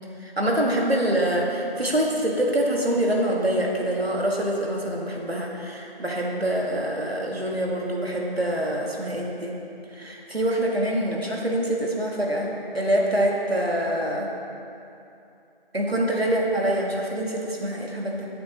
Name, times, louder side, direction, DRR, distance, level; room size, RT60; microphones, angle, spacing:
voice 1, 0.2-9.5 9.9-14.3 15.7-18.3, right 1 dB, 85° right, -2 dB, 2.1 m, -25 dB
16.0 x 8.4 x 3.1 m, 2.7 s
figure-of-eight pair, 160°, 30 cm